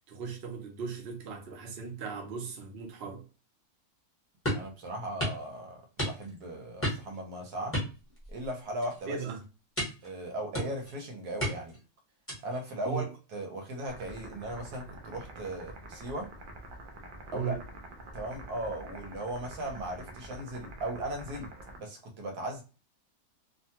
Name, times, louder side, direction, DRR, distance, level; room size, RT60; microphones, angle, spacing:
voice 1, 0.1-3.2 9.1-9.4 12.8-13.1 17.3-17.6, right 6 dB, 50° right, 0.9 m, -37 dB
sound 1, 4.4-4.7 5.2-5.4 6.0-6.4 6.8-7.2 7.7-8.5 8.8-9.1 9.8-10.1 10.5-10.9 11.4-11.8 12.3-12.6, equal, 10° left, 0.9 m, -33 dB
voice 2, 4.5-7.8 8.3-9.2 10.0-11.8 12.4-16.3 17.3-17.6 18.1-21.5 21.8-22.6, right 1 dB, 85° right, 1.3 m, -37 dB
sound 2, 13.9-21.8, right 1 dB, 65° right, 0.5 m, -47 dB
2.9 x 2.2 x 2.8 m
omnidirectional pair, 1.6 m